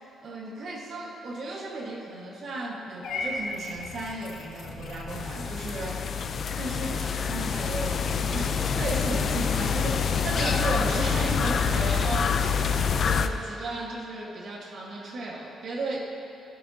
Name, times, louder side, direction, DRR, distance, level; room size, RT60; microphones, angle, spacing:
voice 1, 0.2-6.1 6.6-12.6 13.0-16.2, right 2 dB, 60° right, -1 dB, 1.6 m, -35 dB
Purr / Meow, 3.0-5.3, left 2 dB, 80° left, 1.4 m, -36 dB
sound 1, 5.1-13.3, left 6 dB, 55° left, 0.5 m, -26 dB
16.0 x 11.0 x 2.9 m, 2.9 s
cardioid pair, 90°, 0 cm